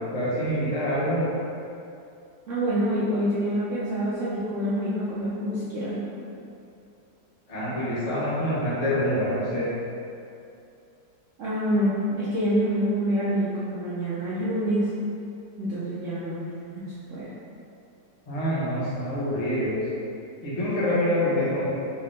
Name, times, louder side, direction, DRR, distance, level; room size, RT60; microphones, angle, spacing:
voice 1, 0.1-1.2 7.5-9.7 18.3-19.8 20.4-21.7, equal, 40° left, -9 dB, 0.5 m, -26 dB
voice 2, 2.5-6.0 11.4-14.9 15.6-16.5 16.7-17.3, equal, 75° right, -10 dB, 0.7 m, -26 dB
4.7 x 2.1 x 3.2 m, 2.6 s
omnidirectional pair, 2.0 m